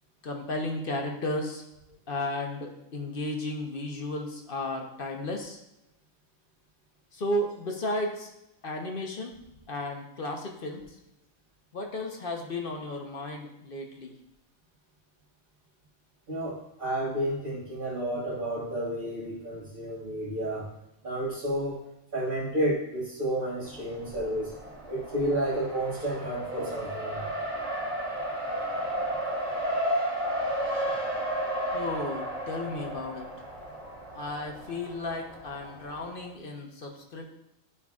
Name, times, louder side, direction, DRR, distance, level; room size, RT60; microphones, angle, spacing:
voice 1, 0.2-1.6 2.1-5.6 7.1-8.3 8.6-9.3 9.7-10.8 11.7-14.1 31.7-33.3 34.1-37.3, left 1 dB, 45° left, 2 dB, 1.0 m, -34 dB
voice 2, 16.3-20.7 21.0-21.8 22.1-24.5 24.9-27.2, right 1 dB, 40° right, -8 dB, 1.5 m, -31 dB
Race car auto racing, 23.6-36.3, right 1 dB, 5° left, 1.5 m, -33 dB
11.0 x 5.5 x 2.4 m, 0.85 s
omnidirectional pair, 1.4 m